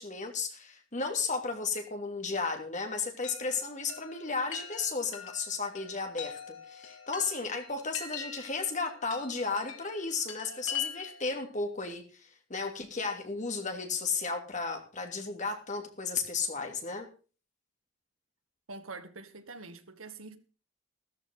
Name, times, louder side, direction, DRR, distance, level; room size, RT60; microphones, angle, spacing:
voice 1, 0.0-17.1, left 4 dB, 35° left, 2.9 m, -34 dB
Chime, 3.2-11.3, left 8 dB, 65° left, 3.1 m, -43 dB
voice 2, 18.7-20.4, right 3 dB, 90° right, 1.9 m, -45 dB
13.5 x 13.5 x 3.9 m
head